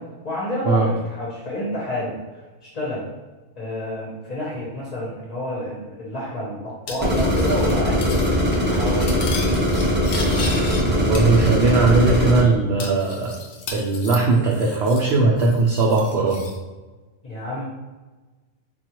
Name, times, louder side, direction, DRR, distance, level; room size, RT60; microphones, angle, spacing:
voice 1, 0.0-3.1 3.6-9.2 17.2-17.6, left 1 dB, 40° left, -6 dB, 0.8 m, -29 dB
Cutlery silverware, 6.9-7.7 8.0-8.3 8.5-10.8 11.1-11.9 12.1-12.2 12.8-15.1 15.4-16.6, left 4 dB, 80° left, 0.9 m, -35 dB
sound 1, 7.0-12.4, equal, 10° right, 0.5 m, -20 dB
voice 2, 10.8-13.3 13.7-16.4, right 3 dB, 65° right, -2 dB, 0.7 m, -19 dB
3.7 x 2.4 x 2.9 m, 1.2 s
omnidirectional pair, 1.3 m